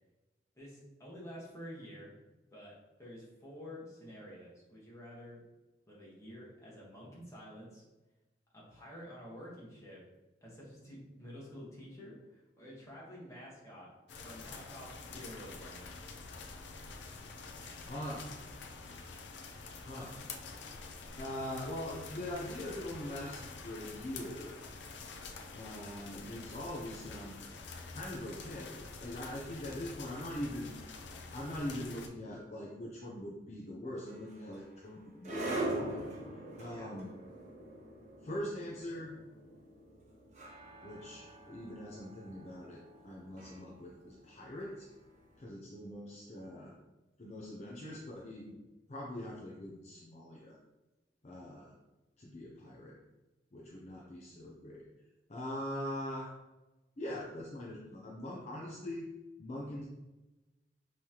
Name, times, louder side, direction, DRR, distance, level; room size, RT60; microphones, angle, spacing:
voice 1, 0.5-2.1 2.5-5.4 5.9-7.8 8.5-10.0 10.4-13.9 14.2-15.9 36.5-36.9, equal, 15° left, -5 dB, 1.3 m, -49 dB
sound 1, 14.1-32.1, left 4 dB, 90° left, 0.5 m, -47 dB
voice 2, 17.6-18.2 19.8-20.2 20.5-24.6 25.5-27.4 27.9-30.7 31.3-36.0 36.6-37.1 38.2-39.2 40.8-44.9 45.4-46.8 47.2-48.6 48.9-50.6 51.2-51.7 52.2-53.0 53.5-54.9 55.3-56.3 57.0-59.0 59.4-59.8, left 1 dB, 40° left, -4 dB, 0.6 m, -42 dB
sound 2, 34.1-45.2, right 1 dB, 40° right, 1.0 m, -43 dB
5.4 x 3.2 x 2.9 m, 1.1 s
head